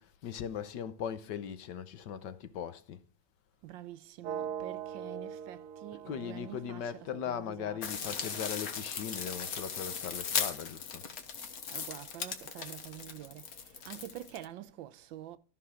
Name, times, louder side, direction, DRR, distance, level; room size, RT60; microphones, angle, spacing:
voice 1, 0.0-3.0 6.0-11.0, left 8 dB, 70° left, 1.5 m, -39 dB
voice 2, 3.6-8.4 11.7-13.4 13.9-15.4, right 12 dB, 85° right, 1.5 m, -47 dB
sound 1, 4.2-8.2, right 8 dB, 70° right, 1.4 m, -42 dB
sound 2, 7.8-14.4, left 6 dB, 55° left, 1.6 m, -38 dB
13.5 x 5.9 x 4.9 m
omnidirectional pair, 2.0 m